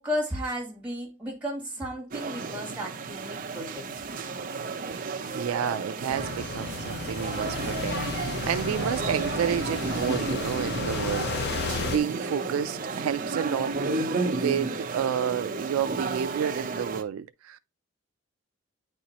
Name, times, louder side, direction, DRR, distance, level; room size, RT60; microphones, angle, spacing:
voice 1, 0.0-3.9, equal, 5° right, 2.5 m, -33 dB
sound 1, 2.1-17.0, right 3 dB, 40° right, 0.6 m, -32 dB
voice 2, 4.9-17.6, right 8 dB, 85° right, 0.3 m, -31 dB
sound 2, 6.1-12.0, left 4 dB, 50° left, 0.6 m, -33 dB
9.3 x 4.3 x 2.8 m
head